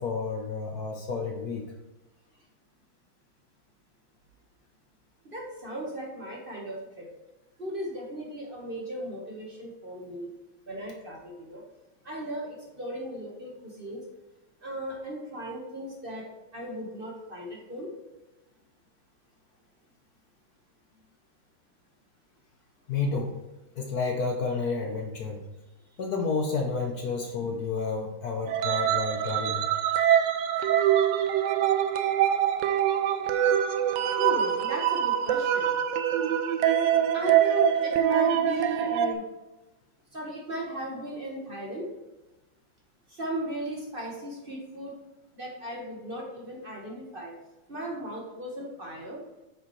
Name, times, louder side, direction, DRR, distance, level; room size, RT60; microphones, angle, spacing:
voice 1, 0.0-1.7 22.9-23.3 23.8-25.4 26.0-29.7, left 4 dB, 60° left, 2 dB, 1.3 m, -30 dB
voice 2, 5.2-7.1 7.6-10.3 10.7-11.6 12.0-14.0 14.6-16.2 16.5-17.9 28.7-28.9 29.2-29.4 29.8-30.1 34.2-35.7 37.1-39.2 40.1-41.9 43.1-44.9 45.3-47.3 47.7-49.2, equal, 30° right, -2 dB, 1.6 m, -36 dB
sound 1, 28.5-39.1, right 10 dB, 75° right, 1.2 m, -24 dB
8.9 x 6.3 x 3.2 m, 1.0 s
omnidirectional pair, 2.1 m